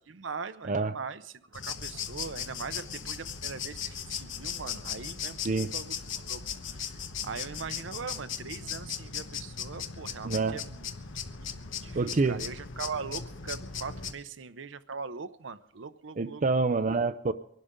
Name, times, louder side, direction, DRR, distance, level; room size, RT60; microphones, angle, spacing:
voice 1, 0.0-6.4 6.7-6.8 7.2-10.9 11.3-16.4, right 5 dB, 75° right, 0.8 m, -41 dB
sound 1, 1.5-14.1, left 7 dB, 80° left, 1.1 m, -38 dB
voice 2, 10.2-10.6 11.9-12.4 16.2-17.3, right 3 dB, 40° right, 0.5 m, -27 dB
24.5 x 12.0 x 3.7 m
head